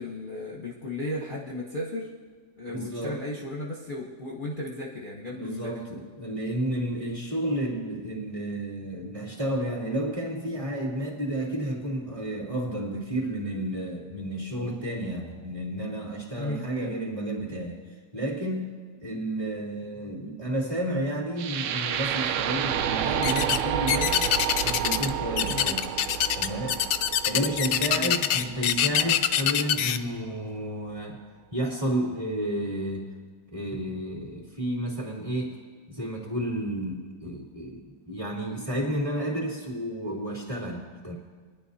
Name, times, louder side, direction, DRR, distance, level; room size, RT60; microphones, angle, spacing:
voice 1, 0.0-2.1 2.6-5.7 16.4-17.0 25.5-25.7 27.9-28.1, left 1 dB, 35° left, -2 dB, 1.1 m, -35 dB
voice 2, 2.7-3.2 5.3-17.8 18.1-24.3 24.6-25.9 26.3-26.8 27.2-31.2 31.5-33.0 33.5-35.6 35.9-41.1, right 1 dB, 20° right, -3 dB, 2.8 m, -31 dB
sound 1, 21.4-29.4, right 9 dB, 70° right, 0.7 m, -30 dB
sound 2, 23.2-23.6 23.9-25.1 25.4-30.0, left 10 dB, 75° left, 0.6 m, -24 dB
22.0 x 10.5 x 2.8 m, 1.5 s
omnidirectional pair, 1.7 m